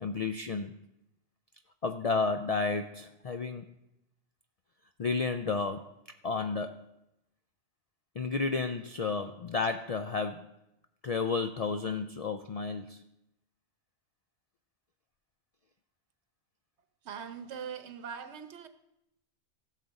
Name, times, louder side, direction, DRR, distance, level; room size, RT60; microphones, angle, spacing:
voice 1, 0.0-0.8 1.8-3.7 5.0-5.9 6.2-6.8 8.2-10.5 11.0-13.0, left 4 dB, 60° left, 7 dB, 0.4 m, -32 dB
voice 2, 17.0-18.7, right 7 dB, 75° right, 9 dB, 1.1 m, -41 dB
16.5 x 6.6 x 4.0 m, 0.87 s
omnidirectional pair, 1.2 m